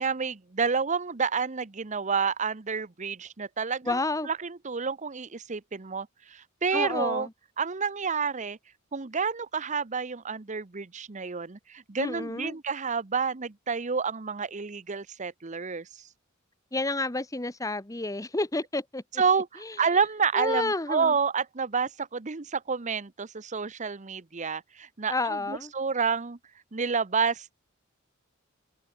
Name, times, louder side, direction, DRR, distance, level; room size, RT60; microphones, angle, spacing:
voice 1, 0.0-7.3 7.6-8.6 8.9-15.9 19.2-26.4 26.7-27.5, right 5 dB, 35° right, 0.9 m, -29 dB
voice 2, 3.9-4.3 6.7-7.3 12.0-12.6 16.7-19.0 19.6-19.7 20.3-21.1 25.1-25.7, left 2 dB, 15° left, 1.2 m, -30 dB
head